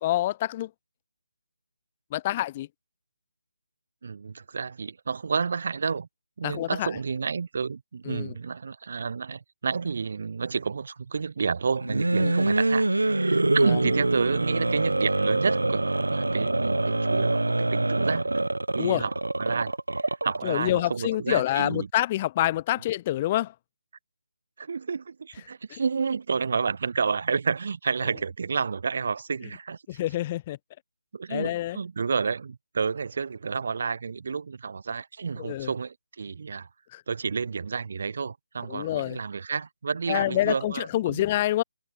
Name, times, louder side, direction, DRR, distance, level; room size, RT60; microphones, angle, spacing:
voice 1, 0.0-0.7 2.1-2.7 6.4-6.9 8.0-8.3 12.2-12.5 13.7-13.8 18.8-19.0 20.4-23.5 25.7-25.8 29.9-30.6 31.3-31.8 35.4-35.7 36.9-37.0 38.7-39.2 40.1-41.6, left 14 dB, 25° left, 1.3 m, -27 dB
voice 2, 4.0-6.1 6.4-18.3 18.7-21.9 24.6-29.8 31.1-36.7 37.1-41.3, right 5 dB, 50° right, 1.8 m, -30 dB
sound 1, 11.8-20.5, right 2 dB, 75° right, 3.2 m, -25 dB
figure-of-eight pair, 150°, 0 cm